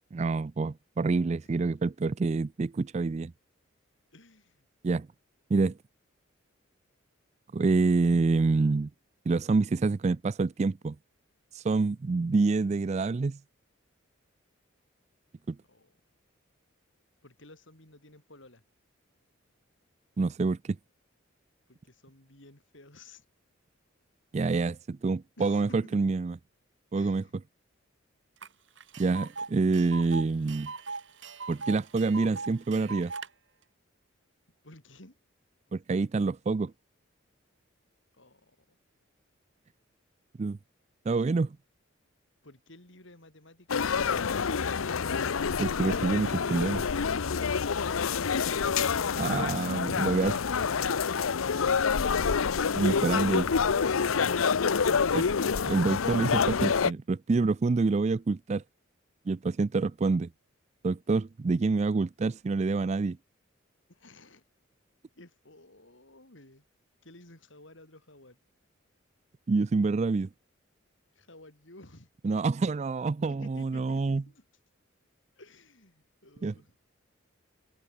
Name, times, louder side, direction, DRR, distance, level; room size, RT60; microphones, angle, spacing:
voice 1, 0.1-3.3 4.8-5.1 5.5-5.8 7.5-8.9 9.3-11.0 11.5-13.4 15.5-15.6 20.2-20.8 24.3-26.3 26.9-27.2 29.0-30.7 31.5-33.1 35.7-36.7 40.4-40.6 41.1-41.6 45.6-46.8 49.2-50.3 52.7-53.5 55.1-55.2 55.7-58.6 59.3-60.3 60.8-63.2 69.5-70.3 72.2-74.2 76.4-76.5, right 3 dB, 35° right, 0.3 m, -27 dB
voice 2, 4.1-4.6 15.7-16.0 17.2-18.6 21.7-23.2 25.4-26.1 26.9-27.3 34.6-35.2 38.1-38.8 42.4-44.4 63.9-64.4 65.1-66.6 67.0-68.4 71.1-72.1 73.3-74.5 75.4-76.7, left 1 dB, 65° left, 5.3 m, -53 dB
Tick, 28.4-28.5 28.8-33.3, right 4 dB, 60° right, 3.4 m, -40 dB
sound 1, 43.7-56.9, left 6 dB, 85° left, 0.7 m, -27 dB
head